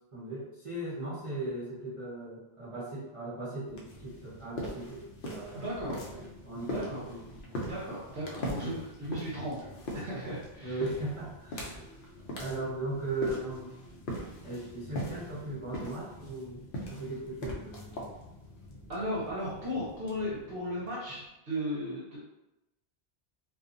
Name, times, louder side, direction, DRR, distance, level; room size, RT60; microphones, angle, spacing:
voice 1, 0.1-7.2 8.6-8.7 10.6-11.9 12.4-13.8 14.4-16.6 16.9-18.0, right 2 dB, 35° right, -11 dB, 0.7 m, -38 dB
sound 1, 3.7-21.2, equal, 60° left, 0.7 m, -42 dB
voice 2, 5.5-6.1 6.7-7.0 7.6-9.7 9.9-10.8 11.5-11.8 18.9-22.2, equal, 65° right, -7 dB, 1.0 m, -36 dB
2.6 x 2.3 x 2.5 m, 0.91 s
omnidirectional pair, 1.1 m